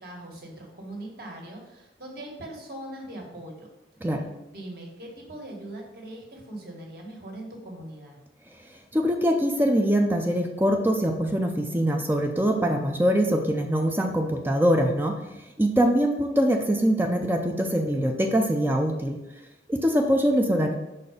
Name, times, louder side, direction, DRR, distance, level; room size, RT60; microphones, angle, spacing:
voice 1, 0.0-3.7 4.5-8.2, right 1 dB, 55° right, -1 dB, 1.6 m, -40 dB
voice 2, 8.9-19.2 19.7-20.8, equal, 10° right, 3 dB, 0.5 m, -23 dB
5.7 x 4.2 x 5.1 m, 0.94 s
head